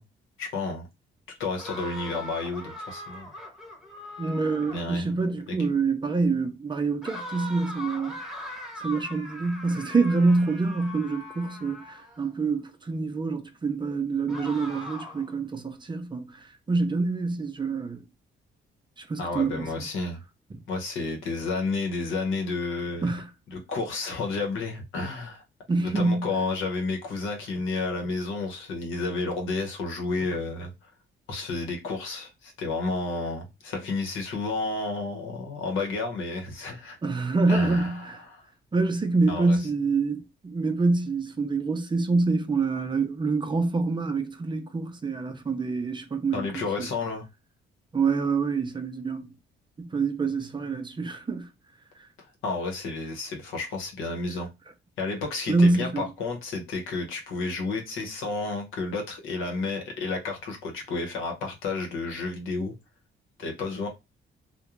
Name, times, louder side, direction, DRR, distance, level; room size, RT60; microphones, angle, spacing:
voice 1, 0.4-0.9 1.4-3.3 4.7-5.2 19.2-20.2 20.7-23.1 23.5-25.4 25.8-30.7 31.3-37.0 37.5-38.4 39.3-39.6 46.3-47.2 52.4-54.5 55.0-62.7 63.4-63.9, left 3 dB, 85° left, 0.9 m, -31 dB
sound 1, 1.6-5.0 7.0-12.3 14.3-15.3, left 1 dB, ahead, 0.9 m, -40 dB
voice 2, 4.2-8.2 8.4-8.5 8.8-18.0 19.0-19.6 23.0-23.3 25.7-26.3 37.0-38.2 38.7-46.9 47.9-49.3 49.8-51.5 55.5-56.1, right 3 dB, 25° right, 0.5 m, -26 dB
2.4 x 2.2 x 3.0 m
cardioid pair, 90°, 20 cm